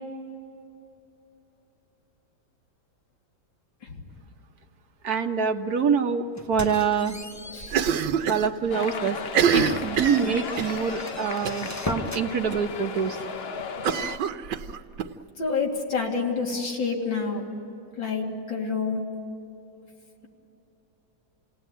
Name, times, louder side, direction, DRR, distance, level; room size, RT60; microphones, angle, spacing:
voice 1, 5.0-7.2 8.3-9.2 9.5-13.2, right 6 dB, 60° right, 6 dB, 1.4 m, -25 dB
sound 1, 6.4-8.5 8.9-9.0 9.5-12.3, left 1 dB, 15° left, 0.7 m, -39 dB
voice 2, 7.5-7.9 9.5-9.8 15.4-17.4 18.0-19.0, left 4 dB, 85° left, -1 dB, 3.6 m, -28 dB
Cough, 7.7-8.5 8.8-8.9 9.2-10.8 11.5-11.8 12.1-12.2 12.5-12.6 13.8-15.1, right 7 dB, 90° right, 1.6 m, -25 dB
sound 2, 8.7-14.2, left 5 dB, 50° left, 0.7 m, -35 dB
28.0 x 18.0 x 9.2 m, 2.9 s
omnidirectional pair, 2.0 m